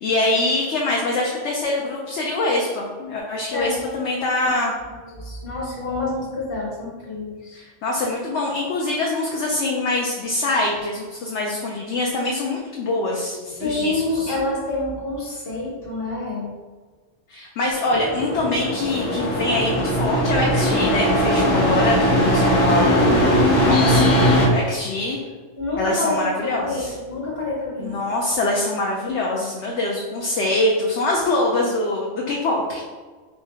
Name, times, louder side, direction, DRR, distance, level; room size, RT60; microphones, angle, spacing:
voice 1, 0.0-4.7 7.5-14.3 17.3-24.1 24.5-25.2 25.8-26.9 27.8-32.8, left 2 dB, 70° left, -2 dB, 0.9 m, -24 dB
voice 2, 4.9-7.6 13.5-16.5 25.6-28.0, left 2 dB, 50° left, -3 dB, 1.2 m, -27 dB
sound 1, 17.9-24.5, equal, 85° left, 1.3 m, -19 dB
3.6 x 3.1 x 3.3 m, 1.4 s
omnidirectional pair, 1.3 m